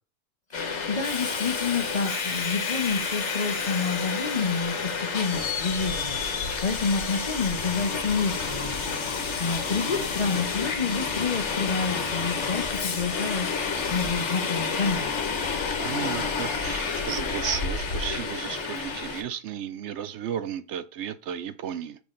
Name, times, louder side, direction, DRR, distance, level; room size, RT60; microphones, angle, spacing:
Subway metro underground, 0.5-19.2, left 5 dB, 65° left, 1.4 m, -29 dB
voice 1, 0.5-13.5 13.9-15.1, left 5 dB, 40° left, 0.8 m, -29 dB
voice 2, 15.8-22.0, right 9 dB, 70° right, 0.8 m, -34 dB
6.2 x 5.8 x 3.7 m
omnidirectional pair, 1.3 m